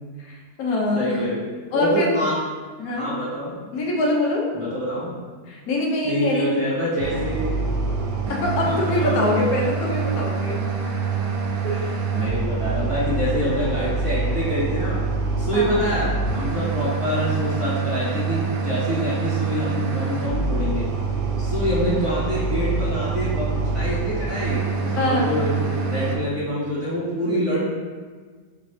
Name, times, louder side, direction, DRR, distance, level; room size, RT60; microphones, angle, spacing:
voice 1, 0.2-1.2 1.7-2.1 2.8-3.1 3.7-4.5 5.5-6.5 8.3-10.7 15.5-15.7 25.0-25.4, left 2 dB, 60° left, -2 dB, 1.1 m, -24 dB
voice 2, 0.9-2.4 2.9-3.5 4.5-5.1 6.0-7.5 8.6-9.4 11.6-15.0 15.4-20.9 21.4-27.6, equal, 20° right, -11 dB, 1.3 m, -26 dB
sound 1, 7.0-26.2, right 4 dB, 65° right, 0.9 m, -25 dB
4.0 x 3.9 x 3.1 m, 1.5 s
omnidirectional pair, 1.9 m